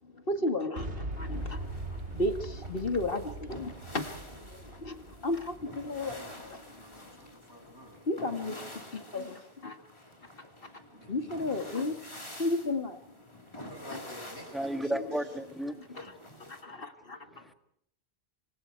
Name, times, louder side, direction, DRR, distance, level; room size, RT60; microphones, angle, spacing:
voice 1, 0.3-1.7 2.1-6.3 8.1-8.6 8.9-9.8 11.1-11.9 12.4-13.0 14.9-15.0 16.0-16.1 16.4-17.5, left 2 dB, 55° left, 7 dB, 2.3 m, -33 dB
Boom, 0.8-6.6, right 1 dB, 85° right, 3.4 m, -40 dB
sound 1, 1.1-16.6, left 1 dB, 25° left, 4.0 m, -49 dB
voice 2, 1.9-2.2 5.9-8.0 8.7-9.5 10.9-11.8 13.5-14.9, left 1 dB, 80° left, 2 dB, 7.8 m, -51 dB
voice 3, 14.5-16.0 16.7-16.8 17.3-17.5, right 1 dB, ahead, 7 dB, 1.6 m, -34 dB
28.0 x 24.5 x 4.7 m, 0.72 s
omnidirectional pair, 1.1 m